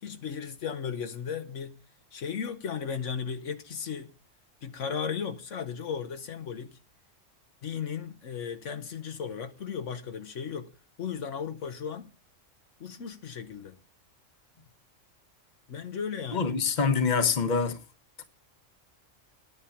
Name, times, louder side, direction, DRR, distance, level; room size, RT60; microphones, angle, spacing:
voice 1, 0.0-1.7 2.1-4.1 4.6-6.8 7.6-10.7 11.0-12.1 12.8-13.8 15.7-16.6, left 7 dB, 70° left, 1.3 m, -35 dB
voice 2, 16.3-17.8 18.2-18.3, left 5 dB, 40° left, 1.2 m, -25 dB
10.5 x 8.4 x 7.1 m
omnidirectional pair, 1.3 m